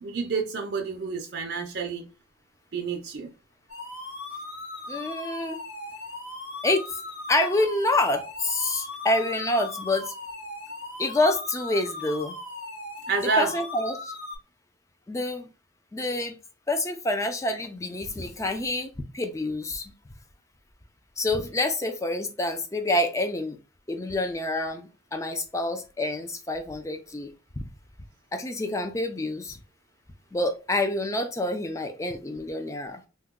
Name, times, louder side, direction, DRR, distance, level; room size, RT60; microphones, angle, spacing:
voice 1, 0.0-2.1 2.7-3.3 13.1-13.5, right 4 dB, 55° right, 0.5 m, -28 dB
sound 1, 3.7-14.4, left 2 dB, 85° left, 1.6 m, -38 dB
voice 2, 4.9-5.6 6.6-6.9 7.3-10.1 11.0-12.3 13.2-14.1 15.1-15.5 15.9-16.4 16.7-19.9 21.2-23.6 23.9-27.3 28.3-29.6 30.3-33.0, left 2 dB, 15° left, 0.4 m, -27 dB
2.9 x 2.2 x 3.5 m
head